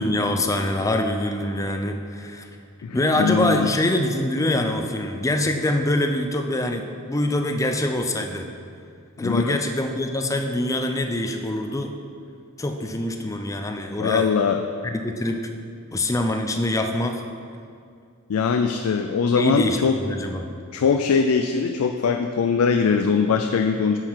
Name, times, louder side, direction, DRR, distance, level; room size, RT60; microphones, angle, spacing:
voice 1, 0.0-2.5 2.9-8.5 9.2-11.9 12.6-14.3 14.9-15.4 15.9-17.2 19.3-20.5, left 1 dB, 15° left, 5 dB, 0.5 m, -24 dB
voice 2, 2.8-3.7 9.2-9.6 14.0-14.6 18.3-20.0 20.7-24.0, left 5 dB, 75° left, 6 dB, 0.4 m, -21 dB
8.7 x 5.8 x 4.6 m, 2.3 s
head